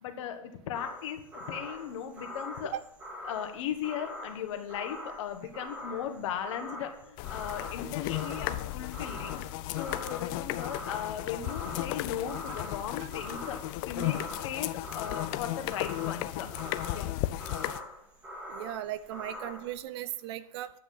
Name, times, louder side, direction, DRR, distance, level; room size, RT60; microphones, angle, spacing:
voice 1, 0.0-2.7 3.2-9.4 9.7-13.6 13.8-14.2 14.4-16.5 16.9-17.1, left 9 dB, 55° left, 6 dB, 1.5 m, -37 dB
sound 1, 0.7-19.8, left 1 dB, 5° right, 2.1 m, -43 dB
sound 2, 7.2-17.8, left 16 dB, 40° left, 0.5 m, -35 dB
voice 2, 18.5-20.7, right 12 dB, 45° right, 16 dB, 0.6 m, -37 dB
10.0 x 5.8 x 5.6 m, 0.73 s
hypercardioid pair, 125°, 18 cm